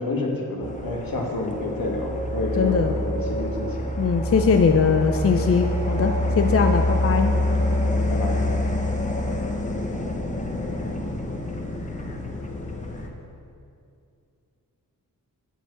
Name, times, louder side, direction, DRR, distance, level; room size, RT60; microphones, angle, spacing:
voice 1, 0.0-3.9 7.8-8.5, left 2 dB, 75° left, 0 dB, 1.6 m, -29 dB
sound 1, 0.6-13.1, left 1 dB, 20° left, 0.9 m, -26 dB
voice 2, 2.6-2.9 4.0-7.3, left 5 dB, 40° left, 6 dB, 0.5 m, -21 dB
7.3 x 6.9 x 8.1 m, 2.5 s
wide cardioid pair, 150°, 35 cm